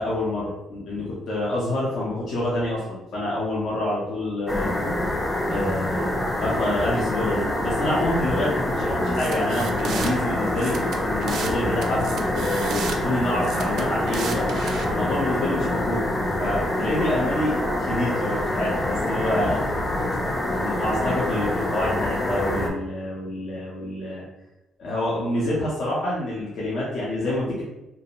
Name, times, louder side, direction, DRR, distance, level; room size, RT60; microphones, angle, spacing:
voice 1, 0.0-4.7 5.5-10.7 11.0-14.4 14.9-16.0 16.4-19.6 20.6-24.3 24.8-27.6, left 1 dB, 65° left, -7 dB, 0.8 m, -27 dB
sound 1, 4.5-22.7, left 1 dB, 20° left, 0.5 m, -25 dB
sound 2, 9.1-10.1 10.6-11.5 11.8-13.0 13.4-14.8, right 5 dB, 70° right, 0.3 m, -33 dB
2.5 x 2.0 x 2.9 m, 0.96 s
cardioid pair, 100°, 0 cm